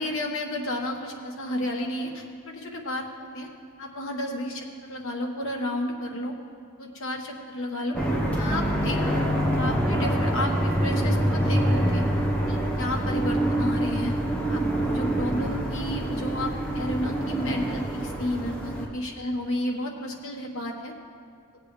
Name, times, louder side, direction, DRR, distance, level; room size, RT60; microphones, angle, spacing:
voice 1, 0.0-3.5 3.8-6.3 6.8-7.9 8.4-12.0 12.5-14.2 14.5-20.9, left 1 dB, 60° left, 0 dB, 1.5 m, -32 dB
sound 1, 7.9-18.9, right 1 dB, 5° left, 1.2 m, -25 dB
17.5 x 8.2 x 3.3 m, 2.4 s
head